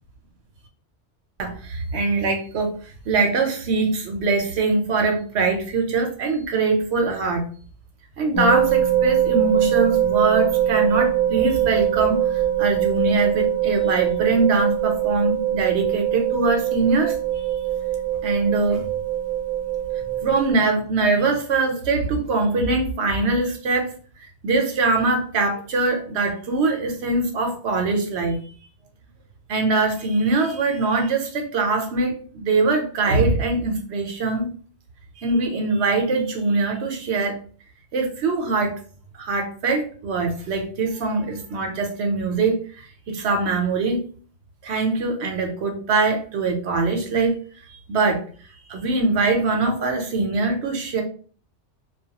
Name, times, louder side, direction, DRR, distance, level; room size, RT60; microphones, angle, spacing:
voice 1, 1.4-2.8 3.1-7.4 8.2-17.4 18.2-18.8 20.2-23.9 24.2-28.5 29.5-34.5 35.2-37.4 37.9-38.8 39.1-42.6 43.1-44.0 44.6-47.4 47.7-48.2 48.7-51.0, right 3 dB, 70° right, 3 dB, 0.9 m, -22 dB
sound 1, 8.3-20.5, right 11 dB, 45° left, 0.8 m, -22 dB
2.3 x 2.2 x 2.7 m, 0.43 s
omnidirectional pair, 1.2 m